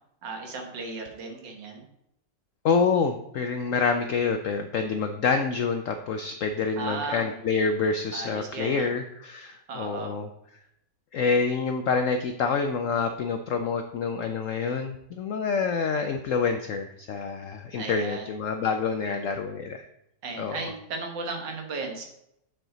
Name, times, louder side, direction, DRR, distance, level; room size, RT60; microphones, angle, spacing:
voice 1, 0.2-1.8 6.8-7.4 8.1-8.9 9.7-10.1 17.7-18.4 20.2-22.1, right 3 dB, 80° right, 3 dB, 1.9 m, -35 dB
voice 2, 2.6-10.3 11.1-19.9 20.4-20.6, left 5 dB, 90° left, 6 dB, 0.7 m, -27 dB
8.3 x 4.5 x 3.9 m, 0.79 s
omnidirectional pair, 1.9 m